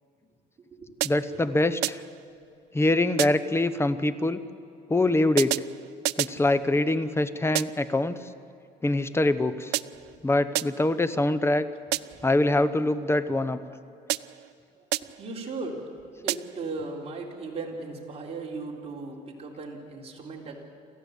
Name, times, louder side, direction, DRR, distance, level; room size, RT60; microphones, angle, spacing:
voice 1, 1.0-2.0 2.7-4.4 4.9-5.6 6.2-8.2 8.8-9.7 10.2-11.7 12.2-13.6, left 2 dB, 15° left, 13 dB, 0.9 m, -24 dB
sound 1, 1.0-1.4 1.8-2.2 3.2-3.6 5.4-6.5 7.5-8.0 9.7-10.2 10.5-11.0 11.9-12.3 14.1-14.5 14.9-15.3 16.3-16.7, right 19 dB, 85° right, 0.5 m, -31 dB
voice 2, 15.2-15.9 16.2-20.6, right 3 dB, 35° right, -1 dB, 4.0 m, -37 dB
27.5 x 14.0 x 8.3 m, 2.7 s
cardioid pair, 110°, 17 cm